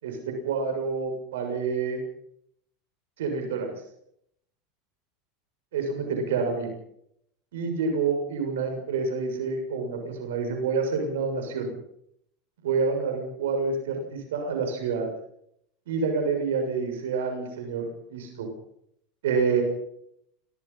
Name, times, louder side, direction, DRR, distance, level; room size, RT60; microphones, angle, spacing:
voice 1, 0.0-2.0 3.2-3.7 5.7-6.7 7.5-11.7 12.6-15.1 15.9-18.5 19.2-19.6, right 5 dB, 80° right, 4 dB, 6.8 m, -28 dB
26.0 x 20.0 x 5.8 m, 0.75 s
hypercardioid pair, 100°, 0 cm